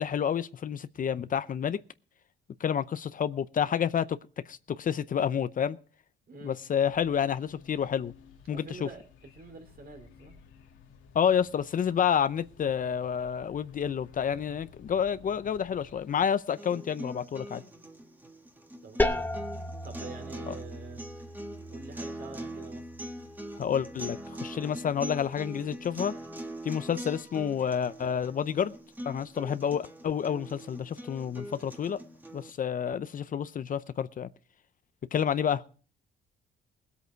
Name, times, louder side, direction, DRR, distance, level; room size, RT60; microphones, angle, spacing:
voice 1, 0.0-1.8 2.6-4.1 4.5-5.8 6.4-8.1 8.5-8.9 11.1-17.6 20.5-20.6 23.6-26.1 26.6-28.7 29.1-32.0 32.3-34.3 35.1-35.6, left 8 dB, 45° left, 0.6 m, -29 dB
voice 2, 6.3-6.6 8.5-9.0 9.3-10.4 18.8-19.5 19.8-21.0 21.7-22.9, right 4 dB, 50° right, 3.3 m, -45 dB
sound 1, 6.9-16.3, left 6 dB, 85° left, 2.2 m, -55 dB
sound 2, 16.5-32.5, right 1 dB, 10° right, 1.7 m, -42 dB
sound 3, 19.0-24.5, left 2 dB, 10° left, 1.1 m, -36 dB
20.0 x 8.3 x 4.5 m
cardioid pair, 110°, 20 cm